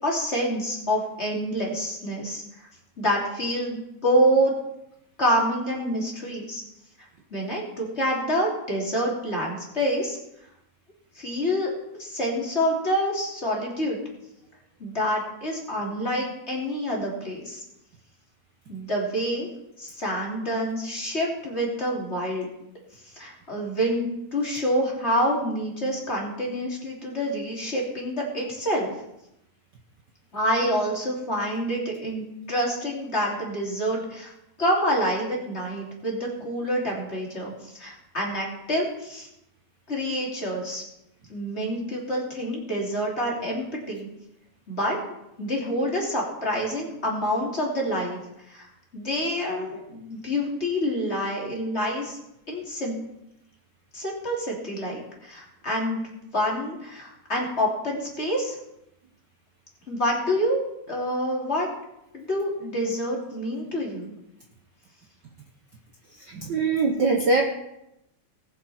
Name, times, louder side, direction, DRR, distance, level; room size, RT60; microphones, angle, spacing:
voice 1, 0.0-2.7 3.0-4.5 5.2-6.6 7.3-10.2 11.1-11.7 12.0-14.0 14.8-17.6 18.7-19.5 19.8-22.5 23.0-28.9 30.3-34.3 34.6-39.3 39.9-40.8 41.3-44.1 44.7-45.0 45.4-48.2 48.5-48.7 48.9-52.2 52.5-53.0 53.9-58.6 59.9-60.6 60.9-61.7 62.1-64.2, equal, 20° left, -3 dB, 2.9 m, -27 dB
voice 2, 66.3-67.4, right 3 dB, 70° right, 2 dB, 1.0 m, -22 dB
19.5 x 7.5 x 4.3 m, 0.85 s
omnidirectional pair, 3.4 m